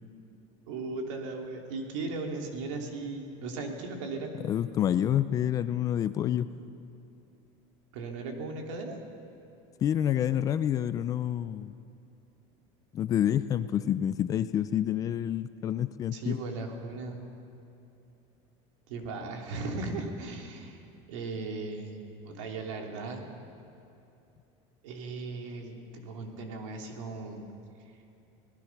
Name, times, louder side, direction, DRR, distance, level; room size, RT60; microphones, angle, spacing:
voice 1, 0.7-4.3 7.9-9.0 16.1-17.2 18.9-20.8 21.1-23.3 24.8-27.4, right 3 dB, 85° right, 2 dB, 3.2 m, -37 dB
voice 2, 4.4-6.5 9.8-11.7 12.9-16.4, left 10 dB, 20° left, 13 dB, 0.4 m, -28 dB
25.5 x 18.5 x 6.0 m, 2.8 s
cardioid pair, 175°, 16 cm